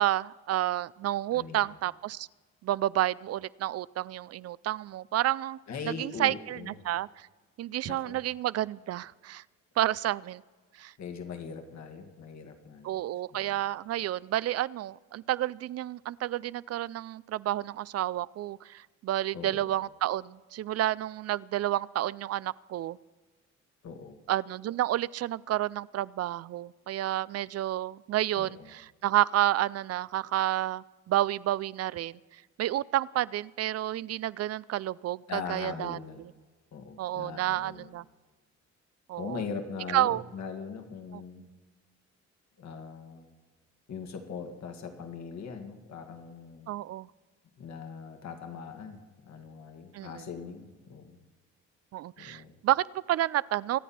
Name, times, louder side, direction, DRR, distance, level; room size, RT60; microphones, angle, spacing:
voice 1, 0.0-2.3 2.6-5.6 5.9-7.3 7.6-9.4 9.8-10.4 10.8-10.9 12.8-23.0 24.3-32.2 32.6-36.0 37.0-38.0 39.1-39.4 39.9-40.2 41.1-41.2 46.7-47.1 49.9-50.3 51.9-53.8, right 13 dB, 55° right, 21 dB, 0.4 m, -30 dB
voice 2, 1.3-1.7 5.7-6.8 7.8-8.2 11.0-13.0 13.3-13.5 19.3-19.7 23.8-24.2 28.4-28.7 35.3-36.2 36.7-37.9 39.2-41.5 42.6-43.3 43.9-46.7 47.6-51.2 52.2-52.6, left 5 dB, 65° left, 5 dB, 2.1 m, -41 dB
25.5 x 9.1 x 4.3 m, 1.4 s
cardioid pair, 90°, 30 cm